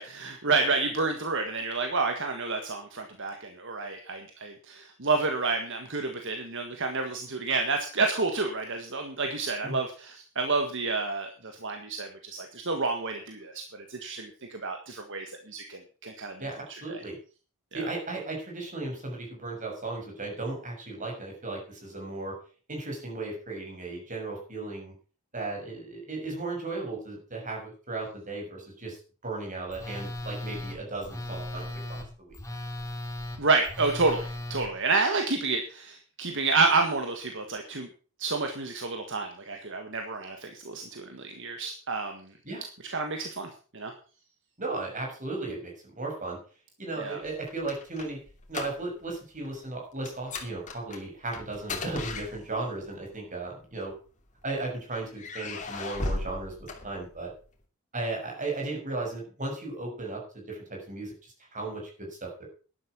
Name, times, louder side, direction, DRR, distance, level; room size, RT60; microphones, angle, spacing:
voice 1, 0.0-16.5 16.9-17.0 17.7-17.9 33.4-37.9 38.2-42.3 42.9-43.9 47.0-47.2, right 3 dB, 55° right, 5 dB, 1.8 m, -29 dB
voice 2, 16.4-17.2 17.7-22.3 22.7-24.9 25.3-32.4 42.4-42.6 44.6-46.4 46.8-48.2 48.5-53.9 54.4-56.5 56.8-57.3 57.9-62.5, right 2 dB, 35° right, 0 dB, 6.6 m, -36 dB
Telephone, 29.7-34.7, left 1 dB, 15° left, 2.2 m, -37 dB
sound 1, 47.3-49.2 49.4-49.7 50.1-52.8 53.7-54.6 55.1-57.4, left 2 dB, 35° left, 2.8 m, -37 dB
12.0 x 11.0 x 6.2 m, 0.39 s
head